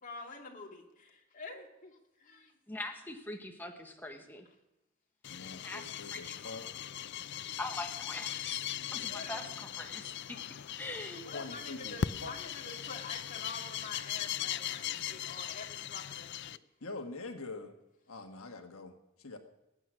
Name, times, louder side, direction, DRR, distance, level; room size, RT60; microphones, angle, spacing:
voice 1, 0.0-1.9 2.2-2.5 9.0-9.4 11.2-16.6, left 3 dB, 40° left, 1 dB, 2.5 m, -47 dB
voice 2, 2.7-4.4 5.6-6.3 7.6-10.4 10.8-11.2, left 2 dB, 10° left, 2 dB, 1.3 m, -42 dB
sound 1, 5.2-16.6, left 10 dB, 55° left, 0.4 m, -39 dB
voice 3, 5.3-6.7 11.3-12.3 16.8-17.7 18.1-19.4, left 3 dB, 85° left, 6 dB, 1.4 m, -44 dB
20.5 x 9.1 x 6.2 m, 0.99 s
head